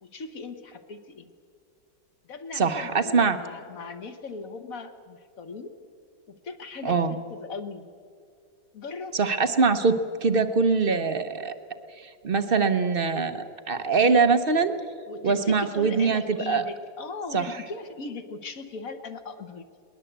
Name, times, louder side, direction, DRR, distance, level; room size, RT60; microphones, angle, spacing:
voice 1, 0.0-1.3 2.2-5.7 6.3-7.9 8.7-9.1 15.1-19.6, left 4 dB, 50° left, 8 dB, 1.5 m, -38 dB
voice 2, 2.6-3.4 6.8-7.1 9.1-11.5 12.0-14.7 15.2-16.6 17.3-17.5, right 4 dB, 40° right, 9 dB, 0.8 m, -23 dB
21.5 x 19.5 x 8.0 m, 2.3 s
omnidirectional pair, 2.0 m